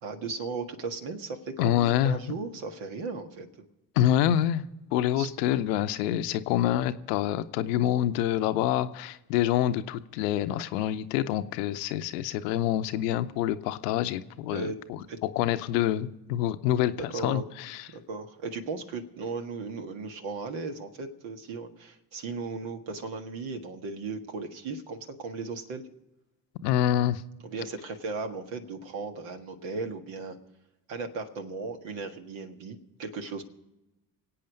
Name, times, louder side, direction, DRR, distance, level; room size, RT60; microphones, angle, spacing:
voice 1, 0.0-3.5 5.1-5.3 14.5-14.8 15.1-15.2 17.1-17.4 17.9-25.8 27.4-30.4 30.9-33.4, right 4 dB, 65° right, 6 dB, 1.7 m, -36 dB
voice 2, 1.6-2.2 4.0-4.7 4.9-17.9 26.6-27.2, left 11 dB, 75° left, 11 dB, 0.8 m, -27 dB
24.5 x 8.6 x 5.2 m, 0.95 s
hypercardioid pair, 50°, 48 cm